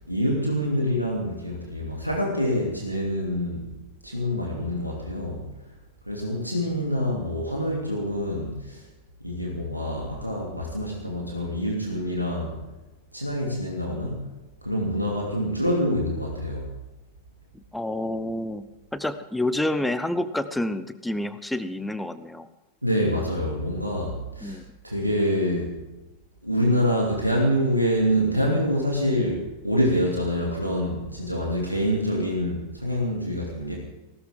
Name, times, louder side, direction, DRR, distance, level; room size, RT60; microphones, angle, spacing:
voice 1, 0.1-3.7 4.0-5.4 6.1-8.8 9.2-12.6 13.1-16.7 22.8-24.6 24.8-25.7 26.4-33.7, equal, 90° right, -2 dB, 3.0 m, -26 dB
voice 2, 17.7-22.5 24.4-24.6, left 1 dB, 5° left, 12 dB, 0.9 m, -29 dB
19.0 x 17.5 x 3.8 m, 1.1 s
figure-of-eight pair, 90°, 0 cm